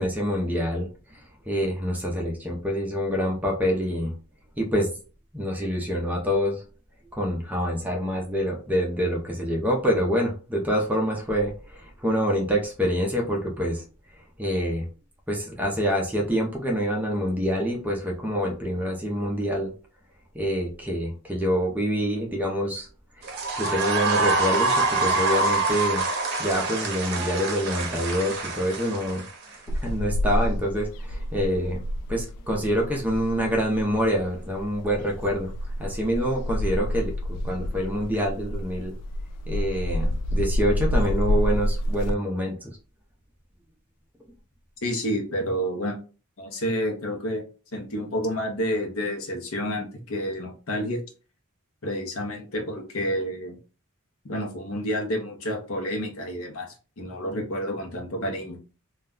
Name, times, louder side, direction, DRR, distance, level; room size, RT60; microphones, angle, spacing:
voice 1, 0.0-4.1 4.6-5.0 5.3-6.6 7.1-13.9 14.1-14.9 15.3-19.7 20.3-22.9 23.1-23.3 23.6-26.1 26.4-31.8 32.1-35.5 35.8-38.9 39.5-42.8, equal, 5° right, -1 dB, 0.5 m, -26 dB
sound 1, 23.2-29.6, right 3 dB, 45° right, 0.7 m, -26 dB
sound 2, 29.7-42.1, equal, 90° left, 0.3 m, -29 dB
voice 2, 44.8-46.0 46.4-47.4 47.7-51.0 51.8-53.6 54.2-58.6, equal, 65° left, 2 dB, 0.7 m, -29 dB
2.3 x 2.1 x 3.6 m, 0.36 s
head